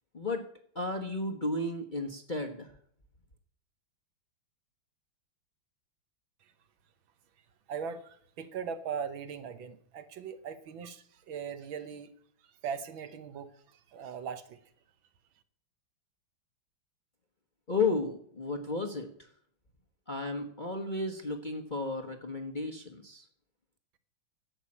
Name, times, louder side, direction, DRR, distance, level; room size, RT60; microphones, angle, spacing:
voice 1, 0.7-2.7 17.7-19.1 20.1-23.2, left 3 dB, 30° left, 4 dB, 1.0 m, -33 dB
voice 2, 7.7-12.1 12.4-14.6, right 7 dB, 70° right, 11 dB, 1.6 m, -40 dB
11.5 x 8.3 x 8.7 m, 0.63 s
omnidirectional pair, 2.4 m